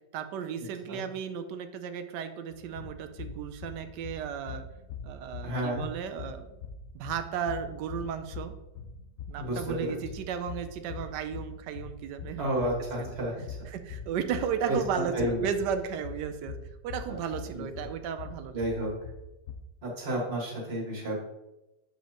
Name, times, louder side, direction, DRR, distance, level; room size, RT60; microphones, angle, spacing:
voice 1, 0.1-4.7 5.0-6.5 6.9-8.5 9.3-12.7 13.0-13.2 13.7-16.6 16.8-18.6, right 7 dB, 90° right, 8 dB, 1.2 m, -34 dB
sound 1, 2.5-19.5, left 4 dB, 60° left, 1.0 m, -43 dB
voice 2, 5.4-5.8 9.4-10.0 12.4-13.6 14.7-15.5 17.1-17.2 17.5-17.6 18.5-18.9 19.8-21.2, right 1 dB, 40° right, -2 dB, 1.8 m, -31 dB
7.4 x 5.6 x 2.9 m, 0.96 s
omnidirectional pair, 1.8 m